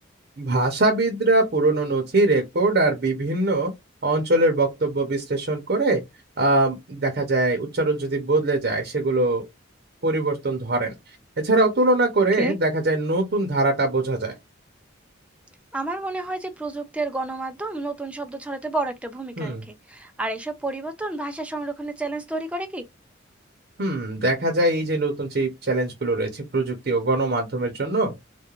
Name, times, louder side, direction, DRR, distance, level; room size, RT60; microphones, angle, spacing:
voice 1, 0.4-3.7 4.0-6.0 6.4-9.4 10.0-10.9 11.4-14.3 19.4-19.6 23.8-28.1, right 2 dB, 50° right, 0.6 m, -22 dB
voice 2, 15.7-22.8, right 2 dB, 5° right, 0.3 m, -30 dB
2.4 x 2.2 x 2.9 m
head